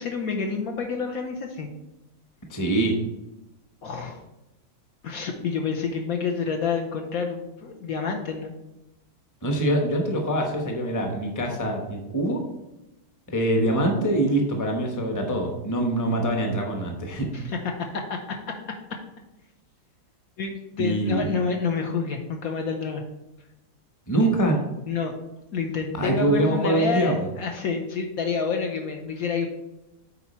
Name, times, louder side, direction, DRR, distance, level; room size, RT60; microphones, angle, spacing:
voice 1, 0.0-1.7 3.8-4.2 5.0-8.5 17.3-18.4 18.9-19.0 20.4-23.0 24.9-25.1 25.5-29.5, left 5 dB, 65° left, 3 dB, 1.1 m, -28 dB
voice 2, 2.5-2.9 9.4-12.4 13.3-17.3 20.8-21.3 24.1-24.6 26.0-27.3, right 1 dB, 15° left, 2 dB, 0.8 m, -24 dB
8.1 x 4.3 x 4.3 m, 0.96 s
omnidirectional pair, 1.8 m